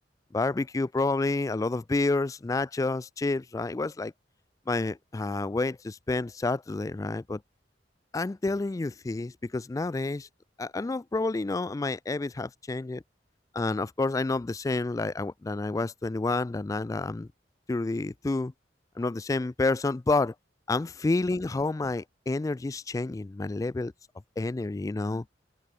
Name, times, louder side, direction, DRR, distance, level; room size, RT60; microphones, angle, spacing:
voice 1, 0.3-4.1 4.7-7.4 8.1-10.3 10.6-13.0 13.5-17.3 17.7-18.5 19.0-20.3 20.7-23.9 24.4-25.2, left 3 dB, 20° left, 0.3 m, -29 dB
open air
head